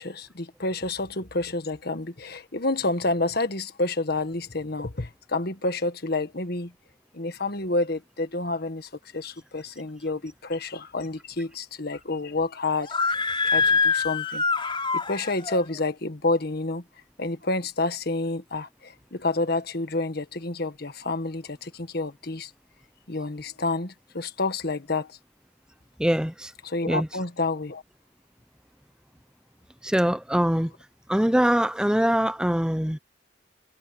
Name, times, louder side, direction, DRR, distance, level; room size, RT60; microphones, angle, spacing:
voice 1, 0.0-6.7 7.1-16.8 17.2-22.5 23.1-25.2 26.6-27.8, left 2 dB, 55° left, 1.6 m, -29 dB
Screaming, 12.8-15.6, left 4 dB, 25° left, 4.6 m, -24 dB
voice 2, 26.0-26.5 26.9-27.1 29.8-30.7 31.1-33.0, equal, 5° right, 0.7 m, -23 dB
head